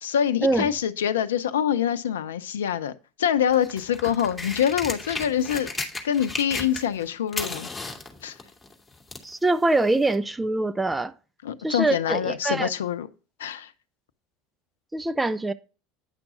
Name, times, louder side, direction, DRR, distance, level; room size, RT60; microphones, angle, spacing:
voice 1, 0.0-2.9 3.2-5.7 6.0-7.7 8.2-8.3 11.4-13.1 13.4-13.7, left 9 dB, 80° left, 0.6 m, -25 dB
sound 1, 3.5-7.0 7.3-9.3 10.1-10.2, left 3 dB, 15° left, 2.4 m, -34 dB
voice 2, 9.2-11.1 11.6-12.7 14.9-15.5, right 2 dB, 10° right, 0.6 m, -24 dB
9.8 x 6.0 x 3.9 m
hypercardioid pair, 75°, 0 cm